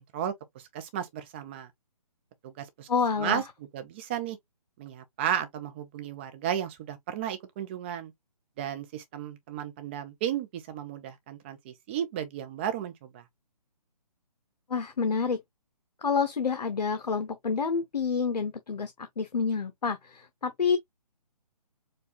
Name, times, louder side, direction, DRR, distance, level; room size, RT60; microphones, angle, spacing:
voice 1, 0.0-1.7 2.4-2.9 3.2-3.4 3.7-4.4 4.8-8.1 8.6-13.2, right 10 dB, 15° right, 0.5 m, -34 dB
voice 2, 2.9-3.4 14.7-15.4 16.0-20.8, left 5 dB, 75° left, 0.7 m, -28 dB
4.7 x 2.4 x 2.5 m
figure-of-eight pair, 140°, 21 cm